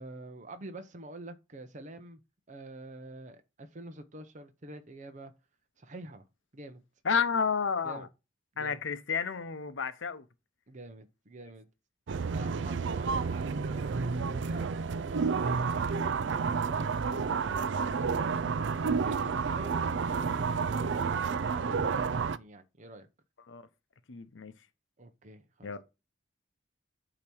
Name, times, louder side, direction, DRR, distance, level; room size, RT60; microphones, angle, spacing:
voice 1, 0.0-2.2 2.5-5.3 5.8-6.2 6.5-6.8 7.8-8.1 8.5-8.8 10.7-11.7 12.1-14.6 15.0-18.5 18.9-23.1 25.0-25.7, right 2 dB, 40° right, 0.8 m, -47 dB
voice 2, 7.0-8.1 8.6-10.2 23.5-23.7 24.1-24.5 25.6-25.8, left 6 dB, 85° left, 0.8 m, -31 dB
sound 1, 12.1-22.4, right 5 dB, 70° right, 0.4 m, -30 dB
8.6 x 3.0 x 6.2 m
head